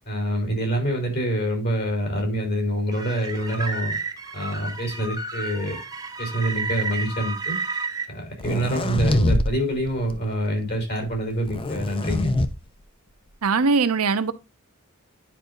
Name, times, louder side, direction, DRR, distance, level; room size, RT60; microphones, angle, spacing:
voice 1, 0.1-3.9 4.3-5.8 6.2-7.6 8.1-12.3, right 1 dB, 50° left, 3.7 m, -26 dB
sound 1, 2.9-8.1, right 3 dB, 15° right, 1.0 m, -31 dB
sound 2, 8.4-9.5 9.8-10.2 11.4-12.5, left 1 dB, 25° left, 0.6 m, -24 dB
voice 2, 13.4-14.3, right 4 dB, 90° right, 0.8 m, -21 dB
10.0 x 5.1 x 2.6 m
head